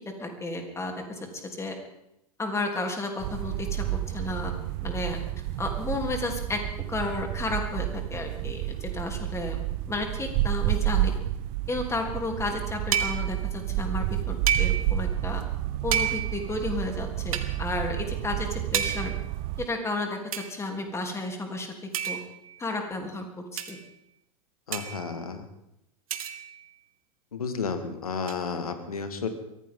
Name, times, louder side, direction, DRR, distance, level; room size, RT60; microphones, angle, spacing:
voice 1, 0.2-1.2 1.6-1.8 2.4-4.5 4.8-5.2 5.6-6.6 6.9-9.6 9.9-11.1 11.7-15.4 15.8-19.1 19.6-21.7 22.1-22.2 22.6-23.2 23.5-23.8, left 2 dB, 15° left, 3 dB, 3.4 m, -32 dB
sound 1, 3.2-19.7, right 14 dB, 50° right, 0.7 m, -30 dB
sound 2, 12.9-13.4 14.5-15.0 15.9-16.5 17.3-17.6 18.7-19.3 20.3-20.5 21.9-22.5 23.6-23.8 24.7-25.1 26.1-26.6 28.3-28.4, right 9 dB, 75° right, 1.5 m, -30 dB
voice 2, 24.7-25.5 27.3-29.3, left 5 dB, 80° left, 8 dB, 2.0 m, -32 dB
23.0 x 16.0 x 3.9 m, 0.84 s
hypercardioid pair, 90°, 18 cm